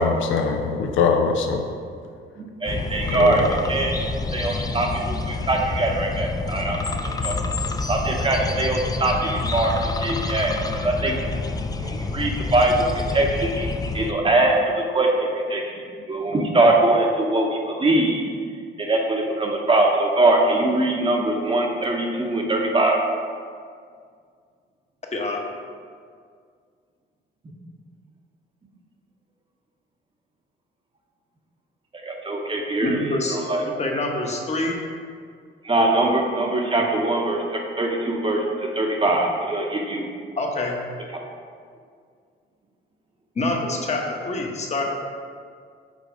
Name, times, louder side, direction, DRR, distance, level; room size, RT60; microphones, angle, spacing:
voice 1, 0.0-1.6 2.9-3.5, left 5 dB, 80° left, 3 dB, 0.6 m, -22 dB
voice 2, 2.4-4.1 4.3-7.3 7.9-11.2 11.8-18.3 18.8-23.0 27.4-27.5 32.0-33.6 35.6-40.1 41.1-41.2, right 2 dB, 25° right, 1 dB, 0.9 m, -22 dB
sound 1, 2.7-14.1, left 3 dB, 20° left, 0.4 m, -28 dB
voice 3, 32.8-33.4 33.7-34.8 40.4-40.7 43.4-44.8, left 2 dB, 35° left, 0 dB, 1.0 m, -26 dB
5.2 x 3.8 x 5.0 m, 2.1 s
cardioid pair, 90°, 20 cm